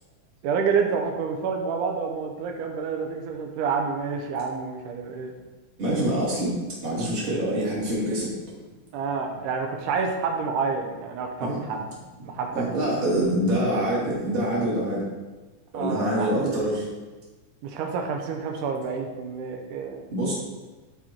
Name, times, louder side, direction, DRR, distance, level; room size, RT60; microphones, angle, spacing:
voice 1, 0.4-5.3 8.9-11.9 12.2-12.7 15.7-16.6 17.6-20.0, right 5 dB, 85° right, 3 dB, 2.3 m, -28 dB
voice 2, 5.8-6.5 6.8-8.3 11.4-11.6 12.5-15.0 15.7-16.8 20.1-20.3, right 1 dB, 20° right, -6 dB, 2.1 m, -25 dB
10.5 x 4.3 x 4.4 m, 1.3 s
omnidirectional pair, 3.6 m